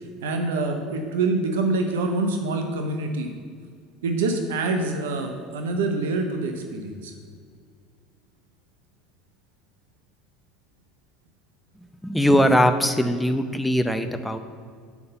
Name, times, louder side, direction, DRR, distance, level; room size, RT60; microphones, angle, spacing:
voice 1, 0.2-3.3 4.0-7.1, right 3 dB, 80° right, 5 dB, 0.7 m, -26 dB
voice 2, 12.0-14.4, equal, 5° left, 8 dB, 0.6 m, -20 dB
5.9 x 5.5 x 6.6 m, 2.1 s
hypercardioid pair, 80°, 0 cm